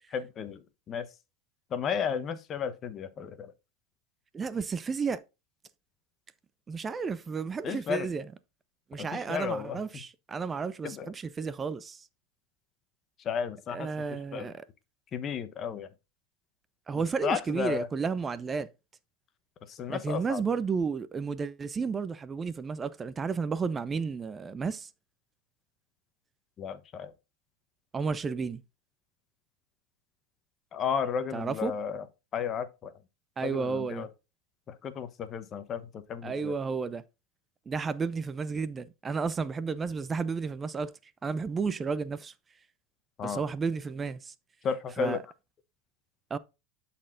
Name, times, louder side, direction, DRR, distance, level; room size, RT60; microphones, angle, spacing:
voice 1, 0.1-1.1 1.7-3.5 7.6-8.1 9.0-10.0 10.8-11.1 13.2-14.5 15.1-15.9 16.9-17.9 19.7-20.4 26.6-27.1 30.7-32.1 32.3-32.9 33.4-34.1 34.7-36.5 43.2-43.4 44.6-45.2, left 7 dB, 35° left, 0.9 m, -33 dB
voice 2, 4.3-5.2 6.7-8.2 8.9-12.1 13.7-14.6 16.9-18.7 19.9-24.9 27.9-28.6 31.3-31.7 33.4-34.1 36.2-37.0 37.7-40.9 41.2-42.3 43.2-44.3 45.0-45.2 46.3-46.4, right 5 dB, 20° right, 0.5 m, -32 dB
11.5 x 4.3 x 2.5 m
supercardioid pair, 115°, 0 cm